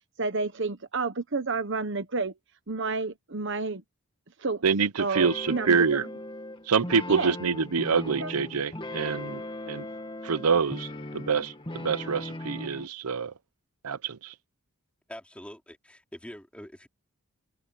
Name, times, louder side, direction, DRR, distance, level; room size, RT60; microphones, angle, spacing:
voice 1, 0.2-2.3 2.7-3.8 4.4-4.6 5.0-6.1 7.1-7.3 8.1-8.3, right 3 dB, 55° right, 1.2 m, -30 dB
voice 2, 4.6-6.0 6.7-9.9 10.2-10.9 11.1-13.3 13.8-14.3, right 5 dB, 85° right, 0.7 m, -26 dB
sound 1, 5.1-12.9, left 1 dB, 25° left, 1.8 m, -38 dB
voice 3, 15.1-16.9, equal, 5° left, 4.6 m, -44 dB
head